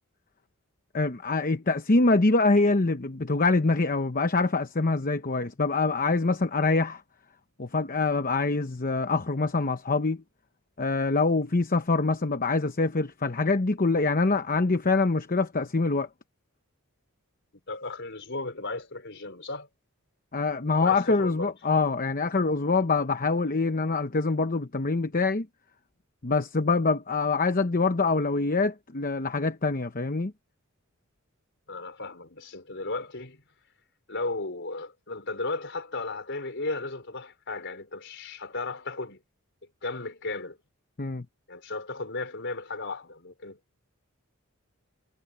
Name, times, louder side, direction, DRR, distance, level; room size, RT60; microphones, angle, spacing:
voice 1, 0.9-7.0 7.6-10.2 10.8-16.1 20.3-25.5 26.2-30.3 41.0-41.2, left 3 dB, 40° left, 0.9 m, -25 dB
voice 2, 17.7-19.7 20.8-21.5 31.7-33.4 34.1-39.2 39.8-40.6 41.5-43.6, left 3 dB, 55° left, 4.8 m, -35 dB
head